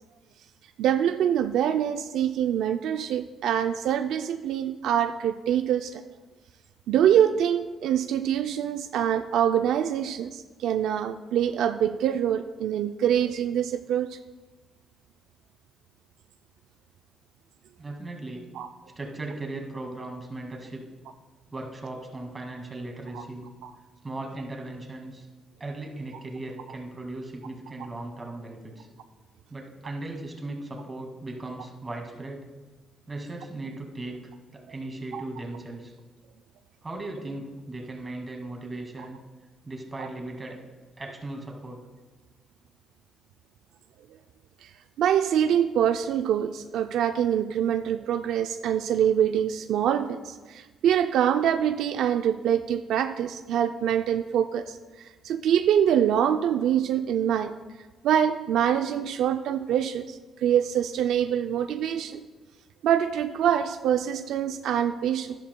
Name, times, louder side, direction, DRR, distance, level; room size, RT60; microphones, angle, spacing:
voice 1, 0.8-6.0 6.9-14.2 18.6-18.7 23.1-23.2 23.6-23.7 35.1-35.2 40.0-40.1 44.6-44.7 45.0-57.5 58.0-62.2 62.8-65.3, right 9 dB, 80° right, 8 dB, 0.3 m, -25 dB
voice 2, 17.8-18.5 19.0-20.8 21.5-23.5 24.0-25.3 25.6-28.9 29.5-32.5 33.1-34.2 34.5-35.9 36.8-39.2 39.6-40.6 41.0-41.8, right 2 dB, 25° right, 1 dB, 1.9 m, -37 dB
11.5 x 11.5 x 2.2 m, 1.3 s
cardioid pair, 90°, 0 cm